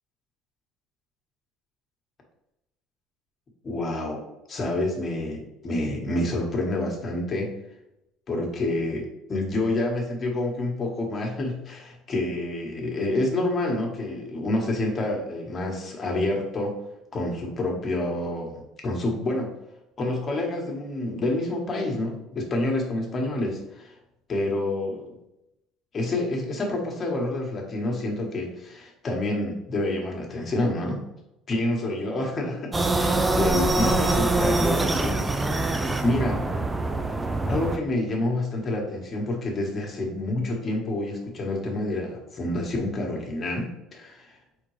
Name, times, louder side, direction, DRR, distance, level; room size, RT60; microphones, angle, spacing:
voice 1, 3.6-4.2 4.5-7.5 8.3-16.7 17.1-19.5 20.0-24.0 24.3-25.2 25.9-31.0 31.5-35.2 36.0-36.4 37.5-44.4, left 1 dB, 35° left, 0 dB, 1.3 m, -28 dB
sound 1, 32.7-37.8, right 2 dB, 15° right, 0.4 m, -24 dB
4.3 x 3.7 x 3.2 m, 0.87 s
supercardioid pair, 95°, 0 cm